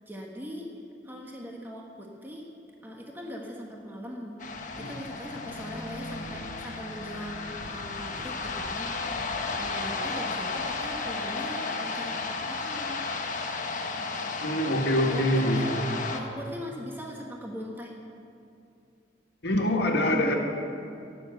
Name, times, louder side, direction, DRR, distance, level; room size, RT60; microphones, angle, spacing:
voice 1, 0.1-0.7 1.0-2.5 2.8-4.4 4.8-13.0 15.1-15.7 16.1-17.9, equal, 10° right, -1 dB, 1.4 m, -40 dB
sound 1, 4.4-16.2, left 3 dB, 45° left, 1.1 m, -33 dB
voice 2, 14.4-15.8 19.4-20.4, left 1 dB, 65° left, 2 dB, 1.7 m, -25 dB
17.5 x 7.0 x 8.1 m, 2.6 s
head